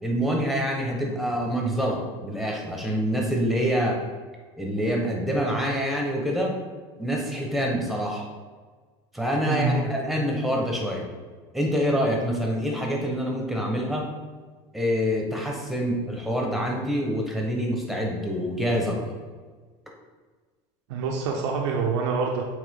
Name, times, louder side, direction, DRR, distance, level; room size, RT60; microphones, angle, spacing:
voice 1, 0.0-4.0 4.6-6.6 7.0-8.3 9.1-11.1 11.5-14.1 14.7-19.2, equal, ahead, -1 dB, 1.2 m, -26 dB
voice 2, 9.5-9.9 20.9-22.4, right 4 dB, 85° right, 0 dB, 0.8 m, -26 dB
8.4 x 3.2 x 3.7 m, 1.4 s
supercardioid pair, 115°, 14 cm